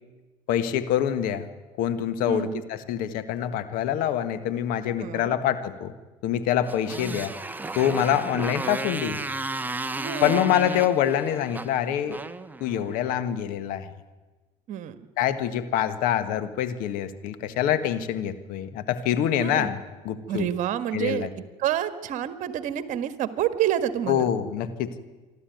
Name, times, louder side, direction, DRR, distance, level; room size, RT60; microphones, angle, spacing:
voice 1, 0.5-1.5 1.8-5.9 6.2-7.3 7.7-9.2 10.2-12.2 12.6-13.9 15.2-19.8 20.0-20.5 20.9-21.3 24.1-24.9, left 10 dB, 65° left, 11 dB, 1.6 m, -25 dB
voice 2, 2.3-2.6 5.0-5.4 10.0-10.4 14.7-15.0 19.4-19.7 20.3-21.3 21.6-24.3, right 11 dB, 55° right, 11 dB, 1.6 m, -28 dB
Motorcycle, 6.6-13.1, right 2 dB, 10° right, 1.0 m, -34 dB
26.0 x 12.5 x 9.3 m, 1.3 s
supercardioid pair, 95°, 15 cm